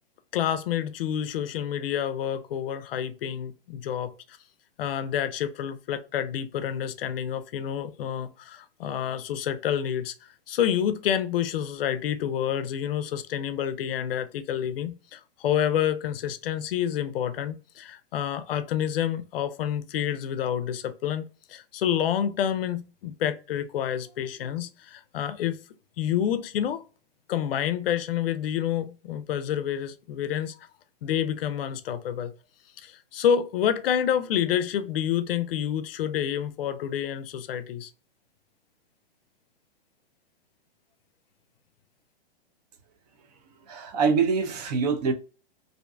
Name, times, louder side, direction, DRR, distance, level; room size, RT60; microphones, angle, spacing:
voice 1, 0.3-4.4 4.8-10.1 10.5-25.6 26.0-26.8 27.3-30.6 31.0-32.3 32.8-37.9, left 9 dB, 65° left, 0.4 m, -28 dB
voice 2, 43.6-45.1, right 5 dB, 45° right, 0.4 m, -24 dB
2.6 x 2.1 x 2.4 m
hypercardioid pair, 140°, 30 cm